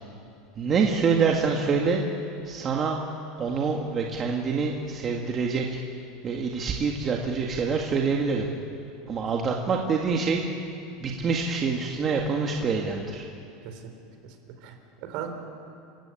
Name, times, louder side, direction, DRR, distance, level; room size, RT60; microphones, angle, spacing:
voice 1, 0.6-2.0 2.5-3.0 3.4-5.7 6.2-8.5 9.1-10.4 11.0-13.3, right 5 dB, 25° right, 0 dB, 1.8 m, -26 dB
voice 2, 14.6-15.3, right 10 dB, 55° right, 6 dB, 4.0 m, -38 dB
29.5 x 16.0 x 8.8 m, 2.6 s
supercardioid pair, 155°, 0 cm